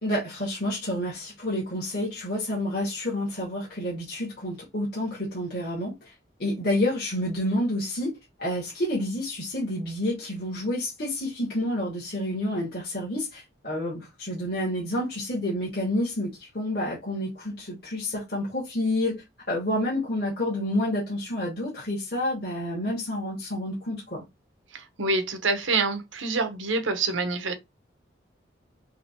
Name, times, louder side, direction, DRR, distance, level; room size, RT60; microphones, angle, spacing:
voice 1, 0.0-6.1 6.4-8.1 8.4-24.2, left 1 dB, 55° left, 2.1 m, -29 dB
voice 2, 24.7-27.5, right 3 dB, 85° right, 1.1 m, -26 dB
4.9 x 3.2 x 3.0 m
head